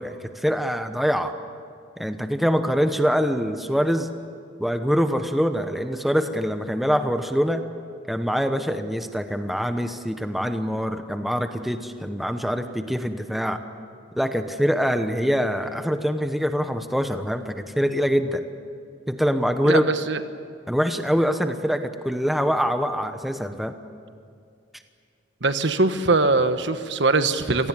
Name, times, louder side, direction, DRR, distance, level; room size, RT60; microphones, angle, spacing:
voice 1, 0.0-1.4 2.0-4.1 4.6-7.6 8.1-13.6 14.1-18.4 19.1-19.8 20.7-23.7, equal, ahead, 7 dB, 1.0 m, -24 dB
voice 2, 19.6-20.2 25.4-27.7, right 3 dB, 65° right, 10 dB, 1.3 m, -22 dB
27.0 x 18.5 x 9.9 m, 2.3 s
head